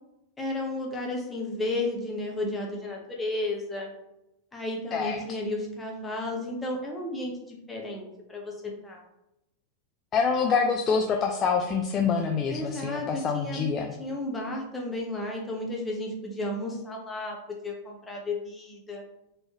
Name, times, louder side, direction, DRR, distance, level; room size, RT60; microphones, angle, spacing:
voice 1, 0.4-3.9 4.5-8.5 8.8-9.0 12.5-13.7 14.0-19.0, left 2 dB, 10° left, -1 dB, 1.0 m, -33 dB
voice 2, 10.1-13.9, left 5 dB, 30° left, 2 dB, 0.4 m, -26 dB
4.3 x 3.1 x 3.0 m, 0.89 s
figure-of-eight pair, 90°, 0 cm